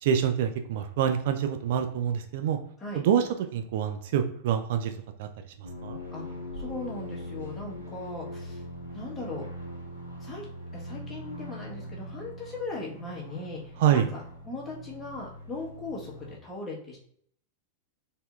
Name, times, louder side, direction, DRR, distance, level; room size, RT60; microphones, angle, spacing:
voice 1, 0.0-2.6 2.9-4.9 5.2-5.3 5.8-6.0 13.8-14.1, right 9 dB, 55° right, 7 dB, 0.4 m, -26 dB
sound 1, 5.6-16.3, left 1 dB, 90° right, 1.6 m, -41 dB
voice 2, 6.1-8.6 8.9-9.5 10.2-10.4 10.7-17.0, left 2 dB, 15° left, -4 dB, 1.5 m, -39 dB
4.2 x 3.4 x 2.5 m, 0.65 s
figure-of-eight pair, 90°, 0 cm